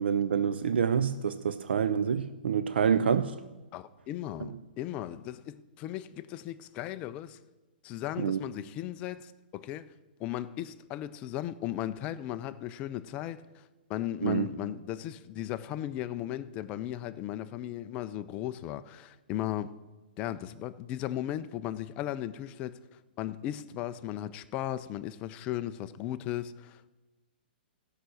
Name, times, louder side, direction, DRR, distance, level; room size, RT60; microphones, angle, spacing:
voice 1, 0.0-3.3 4.4-4.5 8.2-8.4 14.2-14.5, right 7 dB, 85° right, 0.5 m, -27 dB
voice 2, 3.7-7.4 7.8-9.9 10.2-13.6 13.9-19.7 20.2-22.8 23.2-26.9, left 12 dB, 20° left, 0.4 m, -36 dB
15.5 x 5.8 x 6.3 m
hypercardioid pair, 160°, 6 cm